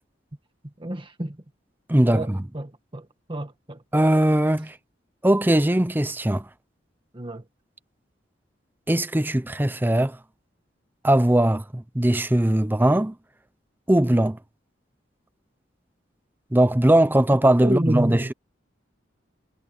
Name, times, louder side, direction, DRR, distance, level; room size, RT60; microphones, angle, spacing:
voice 1, 0.8-1.4 2.1-3.8 7.1-7.4 17.6-18.3, right 1 dB, 30° right, 1.7 m, -29 dB
voice 2, 1.9-2.4 3.9-4.8 5.2-6.5 8.9-10.2 11.0-13.1 13.9-14.4 16.5-18.3, right 1 dB, 10° right, 0.6 m, -20 dB
head